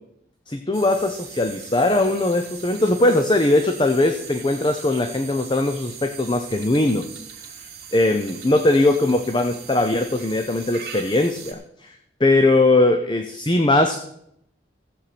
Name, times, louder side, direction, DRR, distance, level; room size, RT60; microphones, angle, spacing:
voice 1, 0.5-7.2 7.9-14.0, left 2 dB, 25° left, 7 dB, 0.7 m, -20 dB
sound 1, 0.7-11.5, right 7 dB, 55° right, 2.6 m, -40 dB
14.5 x 7.8 x 6.0 m, 0.74 s
head